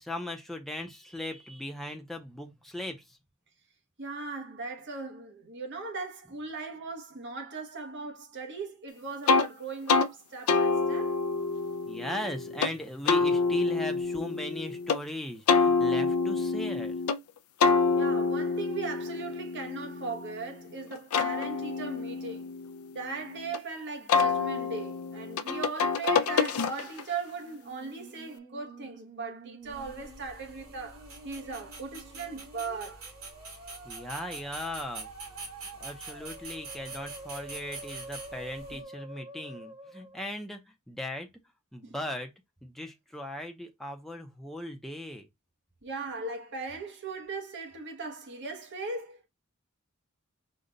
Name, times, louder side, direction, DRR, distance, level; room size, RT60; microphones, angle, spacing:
voice 1, 0.0-3.2 11.9-17.0 33.8-35.1 35.8-41.3 41.7-42.3 42.6-45.3, left 1 dB, ahead, 0.6 m, -38 dB
voice 2, 4.0-11.2 18.0-22.5 22.9-33.1 38.7-38.8 41.8-42.0 45.8-49.3, right 4 dB, 55° right, 1.0 m, -38 dB
sound 1, 9.3-9.5 9.9-10.1 10.5-12.7 13.1-15.0 15.5-17.2 17.6-20.5 20.9-23.6 24.1-27.1, left 4 dB, 70° left, 0.4 m, -27 dB
Musical instrument, 27.3-40.3, right 2 dB, 35° right, 1.3 m, -48 dB
sound 2, 29.7-38.8, right 3 dB, 70° right, 2.4 m, -45 dB
5.2 x 2.3 x 3.9 m
head